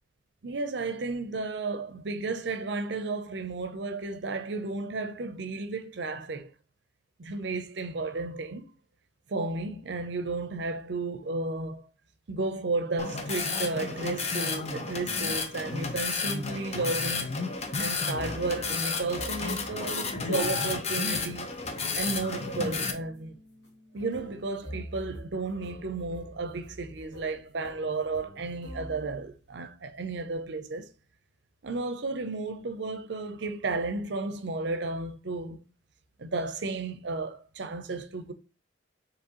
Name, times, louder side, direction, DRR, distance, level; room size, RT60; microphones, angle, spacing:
voice 1, 0.4-6.5 7.2-8.7 9.3-11.9 12.3-17.3 17.8-21.5 21.9-23.4 23.9-30.9 31.6-35.6 36.2-38.3, right 3 dB, 65° right, 0.6 m, -33 dB
sound 1, 13.0-22.9, left 4 dB, 35° left, 0.6 m, -32 dB
sound 2, 18.1-29.3, equal, 60° left, 1.7 m, -47 dB
4.7 x 3.1 x 2.9 m
head